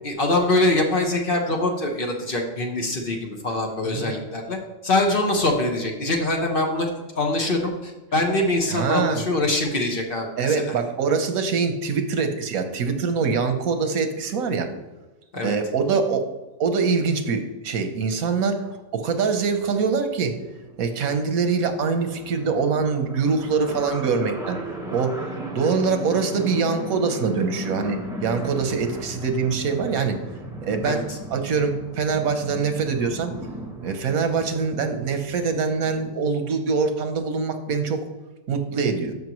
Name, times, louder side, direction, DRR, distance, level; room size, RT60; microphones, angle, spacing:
voice 1, 0.0-6.9 7.1-10.7 15.3-15.5 30.8-31.2, left 2 dB, 45° left, 2 dB, 1.2 m, -24 dB
voice 2, 8.7-9.2 10.4-14.7 15.4-16.3 16.6-20.4 20.8-24.6 24.9-30.2 30.6-31.0 31.3-33.3 33.8-38.1 38.5-39.1, right 5 dB, 85° right, 7 dB, 1.3 m, -24 dB
sound 1, 19.5-19.7 19.9-20.0 20.2-36.1, right 1 dB, 5° right, 1.0 m, -36 dB
13.0 x 5.4 x 3.1 m, 1.1 s
omnidirectional pair, 1.4 m